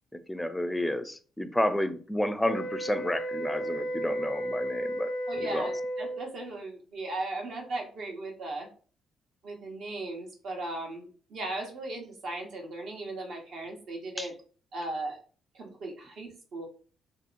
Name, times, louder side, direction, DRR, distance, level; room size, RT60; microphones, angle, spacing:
voice 1, 0.1-5.1 5.4-5.7 14.2-14.3, left 1 dB, 10° left, 0.4 m, -31 dB
sound 1, 2.4-6.3, equal, 75° left, 0.4 m, -33 dB
voice 2, 5.3-8.7 9.4-14.3 14.7-15.2 15.5-16.6, right 2 dB, 70° right, 1.0 m, -37 dB
2.9 x 2.8 x 2.5 m
cardioid pair, 90°, 0 cm